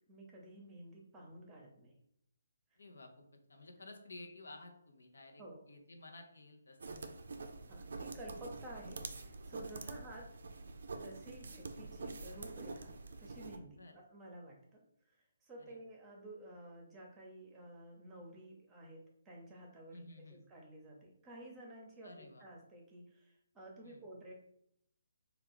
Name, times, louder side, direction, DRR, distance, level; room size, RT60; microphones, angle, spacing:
voice 1, 0.1-1.9 5.4-5.6 7.7-10.3 10.9-12.9 13.2-20.0 20.3-24.3, right 1 dB, 15° right, -1 dB, 0.8 m, -52 dB
voice 2, 2.8-6.8 9.8-9.9 13.8-13.9 15.6-15.8 19.9-20.4 22.0-22.4 23.8-24.0, left 2 dB, 75° left, 3 dB, 0.7 m, -54 dB
sound 1, 6.8-13.6, right 3 dB, 65° right, 0.4 m, -46 dB
3.3 x 2.3 x 3.5 m, 0.72 s
figure-of-eight pair, 145°, 0 cm